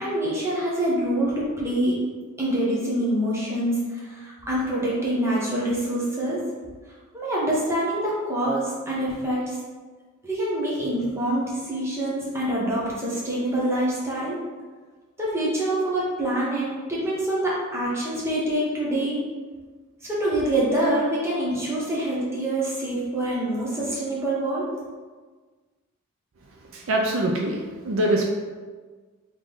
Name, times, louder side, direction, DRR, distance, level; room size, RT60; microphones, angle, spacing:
voice 1, 0.0-2.0 2.4-6.4 7.1-9.6 10.2-14.4 15.2-19.2 20.0-24.7, right 1 dB, 10° right, -6 dB, 0.9 m, -25 dB
voice 2, 26.5-28.3, right 1 dB, 60° right, 0 dB, 0.4 m, -24 dB
3.6 x 3.2 x 3.8 m, 1.4 s
head